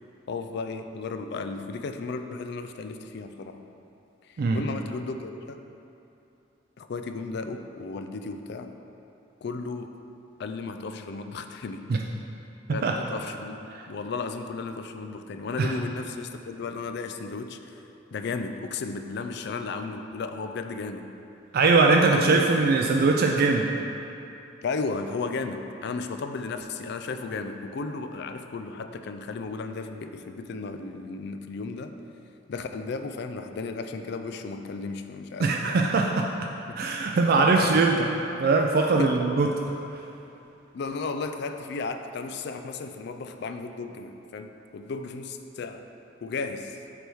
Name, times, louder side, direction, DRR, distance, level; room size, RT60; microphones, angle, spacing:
voice 1, 0.3-3.6 4.2-5.6 6.8-8.7 9.4-10.0 10.4-11.9 12.7-13.6 13.9-17.8 18.1-21.1 22.1-22.4 24.6-32.0 32.5-35.8 36.8-36.9 37.4-37.8 39.0-39.1 40.7-45.9 46.2-46.8, left 4 dB, 55° left, 7 dB, 0.4 m, -34 dB
voice 2, 21.5-23.7 35.4-36.3 36.8-38.1 38.4-39.5, right 3 dB, 50° right, 1 dB, 0.4 m, -21 dB
8.3 x 3.5 x 4.6 m, 2.8 s
head